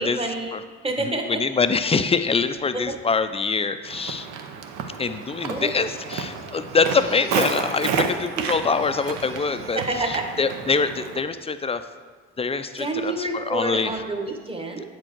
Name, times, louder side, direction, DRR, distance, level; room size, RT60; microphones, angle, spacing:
voice 1, 0.0-1.4 2.7-3.0 5.5-5.7 8.4-8.5 9.7-10.3 12.8-14.9, right 2 dB, 15° right, 3 dB, 1.1 m, -28 dB
voice 2, 1.0-4.3 5.0-11.8 12.4-13.9, left 4 dB, 20° left, 10 dB, 0.4 m, -24 dB
Walk footsteps, 3.8-11.2, right 6 dB, 65° right, 0.7 m, -31 dB
Crying sobbing, 5.2-7.7 8.0-10.2 10.6-11.0, right 2 dB, 45° right, 1.3 m, -46 dB
7.7 x 4.5 x 4.5 m, 1.4 s
hypercardioid pair, 60°, 32 cm